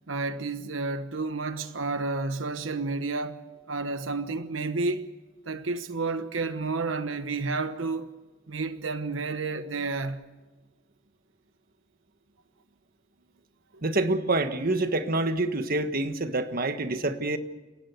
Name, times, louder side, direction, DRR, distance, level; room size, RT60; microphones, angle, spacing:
voice 1, 0.1-5.1 5.4-8.1 8.5-10.3 13.7-13.8, right 3 dB, 85° right, 1.1 m, -31 dB
voice 2, 13.8-17.4, right 2 dB, 50° right, 1.5 m, -27 dB
30.0 x 17.0 x 8.1 m
head